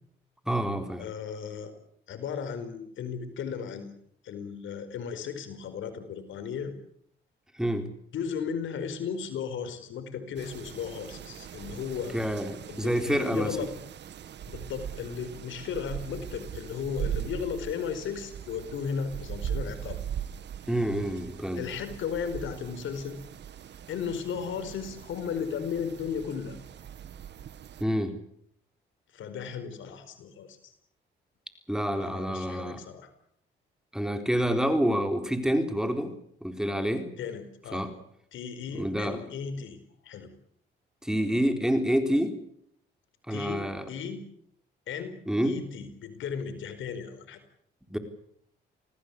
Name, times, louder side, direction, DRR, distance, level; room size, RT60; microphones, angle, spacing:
voice 1, 0.5-1.1 7.6-7.9 12.1-13.6 20.7-21.6 27.8-28.2 31.7-32.8 33.9-36.1 36.4-37.1 37.7-37.9 38.7-39.2 41.0-42.4 43.3-43.9 45.3-45.6 47.9-48.0, equal, 5° right, 7 dB, 4.1 m, -27 dB
voice 2, 1.0-1.7 2.1-3.9 4.2-6.7 8.1-12.2 12.7-13.7 14.4-20.0 21.6-23.2 23.9-26.6 29.1-30.7 32.0-33.1 37.2-37.9 38.3-40.3 43.3-44.3 44.9-47.4, left 6 dB, 75° left, 10 dB, 4.7 m, -35 dB
sound 1, 10.4-27.8, right 9 dB, 60° right, 1.7 m, -40 dB
27.5 x 18.5 x 8.5 m, 0.68 s
cardioid pair, 90°, 20 cm